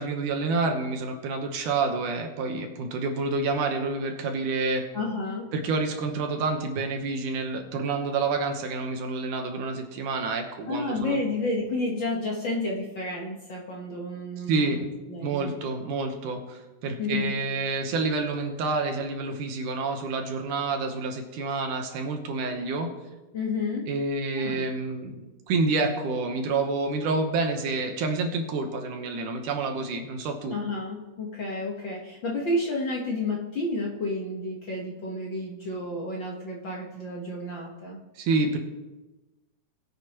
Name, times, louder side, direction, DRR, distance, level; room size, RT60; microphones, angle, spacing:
voice 1, 0.0-4.8 5.5-11.2 14.5-14.8 15.2-22.9 23.9-30.6 38.2-38.6, right 3 dB, 70° right, 4 dB, 2.4 m, -28 dB
voice 2, 4.9-5.5 10.7-15.6 17.0-17.3 23.3-23.9 24.3-24.6 30.5-38.0, left 2 dB, 60° left, -2 dB, 1.2 m, -31 dB
21.0 x 8.1 x 3.0 m, 1.1 s
omnidirectional pair, 4.0 m